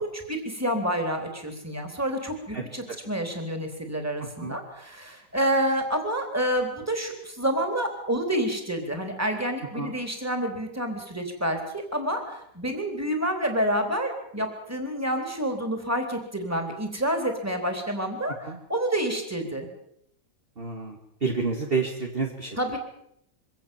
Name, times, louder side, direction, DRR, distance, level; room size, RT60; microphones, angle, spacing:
voice 1, 0.0-18.4 18.7-19.7 22.6-22.8, right 1 dB, 10° right, 5 dB, 3.9 m, -28 dB
voice 2, 2.5-3.0 4.2-4.6 9.7-9.9 18.4-18.6 20.6-22.6, right 4 dB, 35° right, 1 dB, 2.4 m, -30 dB
24.5 x 17.5 x 7.3 m, 0.73 s
omnidirectional pair, 1.8 m